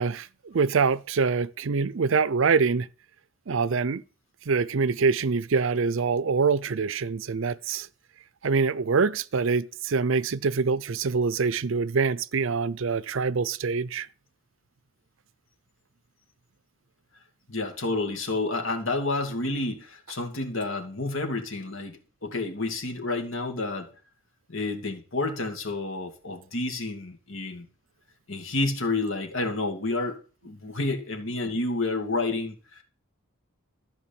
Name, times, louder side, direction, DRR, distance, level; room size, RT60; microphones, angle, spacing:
voice 1, 0.0-2.9 3.5-4.0 4.5-7.9 8.4-14.1, right 5 dB, 65° right, 0.5 m, -25 dB
voice 2, 17.5-23.9 24.5-27.7 28.3-30.2 30.4-32.8, left 2 dB, 70° left, 2.5 m, -30 dB
14.0 x 5.2 x 8.7 m
head